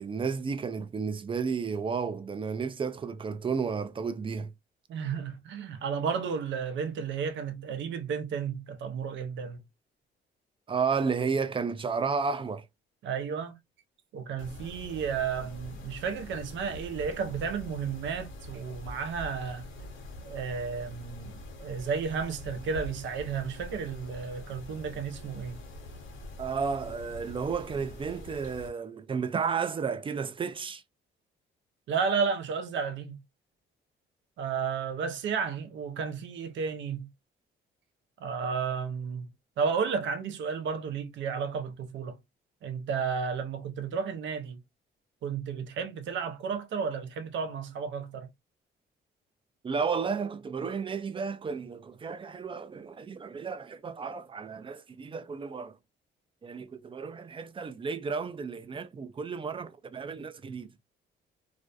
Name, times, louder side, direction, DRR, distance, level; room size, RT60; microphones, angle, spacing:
voice 1, 0.0-4.5 10.7-12.7 26.4-30.8 49.6-55.8 56.4-60.7, right 5 dB, 25° right, 0.3 m, -32 dB
voice 2, 4.9-9.6 13.0-13.5 14.1-19.6 20.2-25.6 31.9-33.2 34.4-37.1 38.2-39.3 39.6-42.2 42.6-44.6 45.2-48.3, right 6 dB, 70° right, 0.6 m, -32 dB
Mechanisms, 14.4-28.7, left 1 dB, 80° left, 0.8 m, -44 dB
2.4 x 2.2 x 2.5 m
cardioid pair, 90°, 20 cm